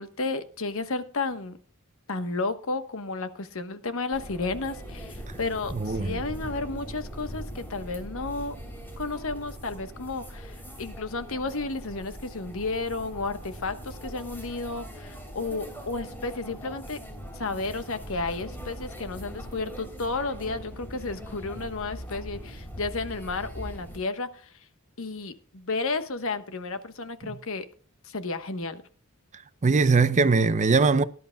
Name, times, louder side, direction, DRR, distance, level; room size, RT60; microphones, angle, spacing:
voice 1, 0.0-1.6 2.1-8.5 9.0-17.0 17.3-24.5 25.0-27.7 28.0-28.8, left 3 dB, 65° left, 1.2 m, -32 dB
sound 1, 4.1-24.0, equal, 10° left, 3.3 m, -41 dB
voice 2, 5.7-6.2 29.6-31.0, right 4 dB, 35° right, 0.6 m, -21 dB
19.0 x 11.0 x 2.3 m
head